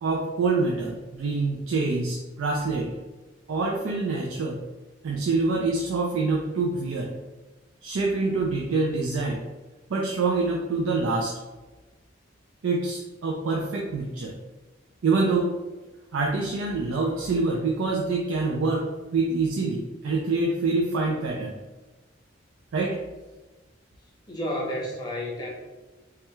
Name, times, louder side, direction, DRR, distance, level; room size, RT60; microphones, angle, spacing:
voice 1, 0.0-2.9 3.5-4.6 5.0-7.1 7.8-9.5 9.9-11.3 12.6-14.3 15.0-15.5 16.1-21.6 22.7-23.0, right 3 dB, 90° right, -1 dB, 0.4 m, -26 dB
voice 2, 24.3-25.5, equal, 20° left, -3 dB, 0.7 m, -31 dB
3.2 x 2.3 x 3.0 m, 1.2 s
head